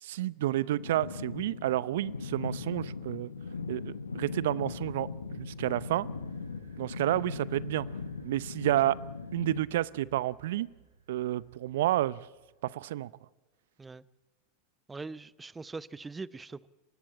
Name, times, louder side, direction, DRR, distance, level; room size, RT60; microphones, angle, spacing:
voice 1, 0.0-3.3 3.7-6.1 6.8-7.9 8.2-9.0 9.3-10.7 11.1-12.2 12.6-13.1, right 14 dB, 70° right, 21 dB, 0.7 m, -30 dB
sound 1, 0.8-9.6, left 4 dB, 90° left, 1.3 m, -39 dB
sound 2, 4.6-12.7, right 6 dB, 85° right, 4.9 m, -57 dB
voice 2, 14.9-16.7, right 3 dB, 15° right, 19 dB, 0.7 m, -42 dB
23.5 x 18.5 x 8.8 m, 1.2 s
hypercardioid pair, 90°, 0 cm